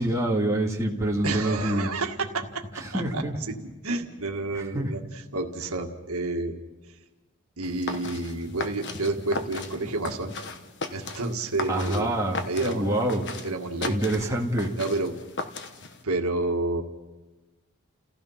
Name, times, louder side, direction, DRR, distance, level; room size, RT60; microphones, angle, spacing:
voice 1, 0.0-1.9 2.8-3.4 4.5-4.9 11.7-13.2 13.8-14.7, right 1 dB, 15° right, -1 dB, 2.0 m, -26 dB
voice 2, 1.2-3.2 3.8-5.0 5.3-6.6 7.6-10.3 10.9-12.1 12.5-12.9 13.4-14.0 14.8-15.1 16.0-16.8, right 2 dB, 75° right, 3 dB, 1.7 m, -29 dB
sound 1, 7.6-16.0, left 3 dB, 55° left, 1.3 m, -37 dB
30.0 x 16.0 x 5.7 m, 1.2 s
head